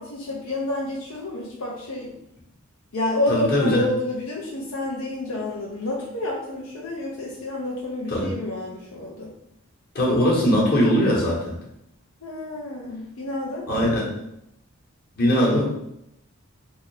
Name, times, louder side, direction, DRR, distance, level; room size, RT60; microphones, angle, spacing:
voice 1, 0.0-2.1 2.9-9.3 12.2-13.7 14.0-14.2 15.2-15.6, left 2 dB, 75° left, -4 dB, 0.7 m, -29 dB
voice 2, 3.3-3.9 8.1-8.3 9.9-11.6 13.7-14.1 15.2-15.7, equal, 45° left, -4 dB, 1.2 m, -20 dB
3.6 x 2.7 x 3.3 m, 0.80 s
head